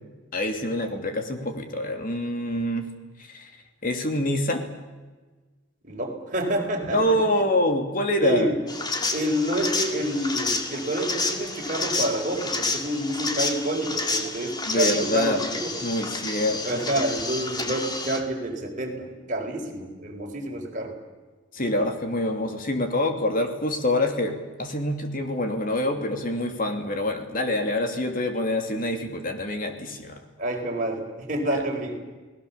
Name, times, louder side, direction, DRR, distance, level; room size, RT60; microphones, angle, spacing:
voice 1, 0.3-2.9 3.2-3.5 3.8-4.7 6.9-8.5 14.7-15.4 15.8-16.8 21.5-30.2 31.5-31.6, left 1 dB, 45° left, 5 dB, 2.9 m, -26 dB
voice 2, 5.8-7.2 8.2-8.6 9.1-15.8 16.6-21.0 30.4-32.0, right 1 dB, 40° right, 1 dB, 4.6 m, -28 dB
sound 1, 8.7-18.2, left 3 dB, 20° left, 2.1 m, -30 dB
30.0 x 19.0 x 7.1 m, 1.3 s
head